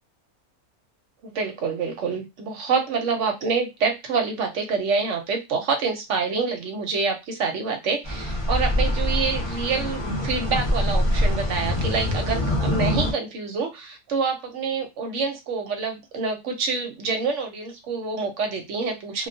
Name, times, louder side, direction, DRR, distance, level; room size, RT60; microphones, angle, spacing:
voice 1, 1.2-19.3, right 4 dB, 60° right, 4 dB, 0.9 m, -27 dB
sound 1, 8.0-13.1, left 1 dB, 25° left, 0.8 m, -24 dB
2.3 x 2.3 x 2.5 m, 0.21 s
omnidirectional pair, 1.6 m